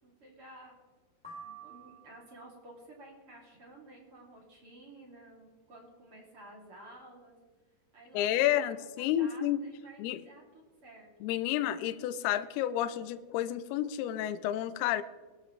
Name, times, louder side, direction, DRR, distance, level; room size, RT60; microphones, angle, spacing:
voice 1, 0.0-0.8 1.4-7.4 7.9-11.1, right 1 dB, 35° right, -2 dB, 3.1 m, -53 dB
sound 1, 1.2-2.5, right 4 dB, ahead, 2.1 m, -49 dB
voice 2, 8.1-9.6 10.0-10.2 11.2-15.0, left 12 dB, 90° left, 11 dB, 2.2 m, -30 dB
22.0 x 12.5 x 3.2 m, 1.3 s
omnidirectional pair, 5.4 m